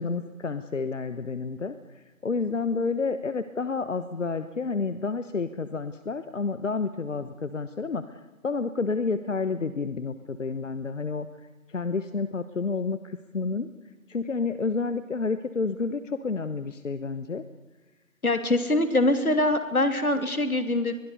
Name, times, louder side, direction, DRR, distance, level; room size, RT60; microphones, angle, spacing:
voice 1, 0.0-11.3 11.7-13.7 14.1-17.4, left 4 dB, 60° left, 12 dB, 1.2 m, -30 dB
voice 2, 18.2-20.9, left 2 dB, 80° left, 9 dB, 3.1 m, -23 dB
23.5 x 22.0 x 6.8 m, 1.2 s
figure-of-eight pair, 155°, 43 cm